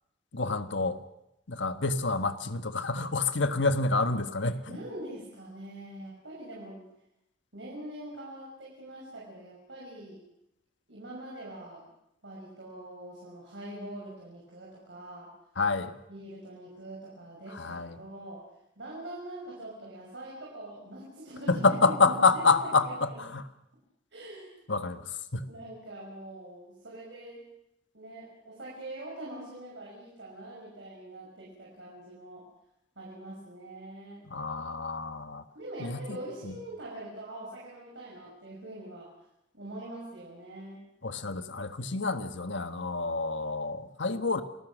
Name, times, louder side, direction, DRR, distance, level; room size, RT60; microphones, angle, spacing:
voice 1, 0.3-1.0 1.5-4.8 15.6-15.9 17.5-18.0 21.5-23.4 24.7-25.0 25.3-25.5 34.3-35.4 35.8-36.2 36.4-36.5 41.0-44.4, left 3 dB, 85° left, 9 dB, 1.5 m, -28 dB
voice 2, 4.7-6.9 7.5-10.2 10.9-11.8 12.2-15.3 16.1-18.4 18.8-23.2 24.1-24.5 25.5-27.4 27.9-32.4 33.0-34.2 35.5-39.1 39.5-40.8, right 1 dB, 80° right, -4 dB, 6.0 m, -43 dB
28.5 x 19.0 x 6.3 m, 0.81 s
head